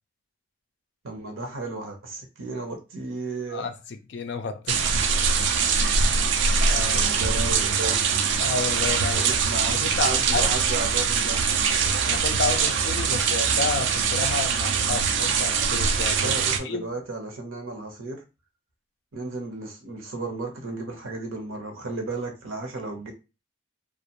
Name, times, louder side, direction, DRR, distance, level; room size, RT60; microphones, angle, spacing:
voice 1, 1.0-3.6 6.9-8.0 9.1-11.5 16.2-18.2 19.1-23.1, right 2 dB, 85° right, 0.8 m, -34 dB
voice 2, 3.5-5.1 5.7-6.2 6.6-7.1 8.4-9.3 9.6-10.5 12.1-16.4 16.6-16.9, left 4 dB, 60° left, 0.4 m, -31 dB
sound 1, 4.7-16.6, right 6 dB, 65° right, 0.3 m, -23 dB
2.5 x 2.1 x 2.8 m
head